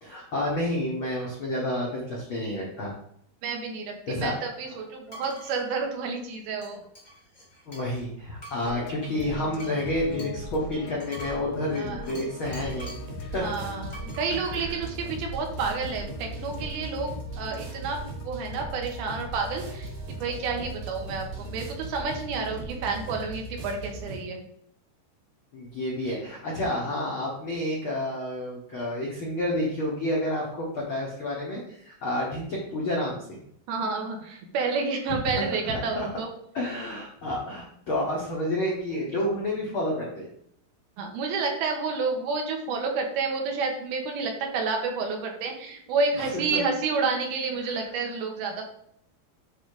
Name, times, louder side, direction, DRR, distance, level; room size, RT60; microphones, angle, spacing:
voice 1, 0.0-2.9 4.1-4.3 4.7-4.8 7.7-12.9 13.3-13.5 14.3-14.8 25.5-33.4 35.0-36.1 36.5-40.3 46.2-46.6 47.6-47.9, left 1 dB, 65° left, -4 dB, 1.2 m, -30 dB
voice 2, 3.4-6.8 11.7-12.1 13.4-19.9 20.2-24.4 33.7-36.3 41.0-48.6, right 4 dB, 80° right, 2 dB, 3.0 m, -30 dB
sound 1, 5.1-5.6 6.6-8.0 8.4-13.1 13.9-14.3, equal, 25° left, 0.9 m, -46 dB
sound 2, 8.6-23.3, left 3 dB, 85° left, 1.6 m, -41 dB
sound 3, 12.4-24.2, right 3 dB, 60° right, 2.8 m, -39 dB
9.2 x 3.5 x 5.0 m, 0.69 s
omnidirectional pair, 4.5 m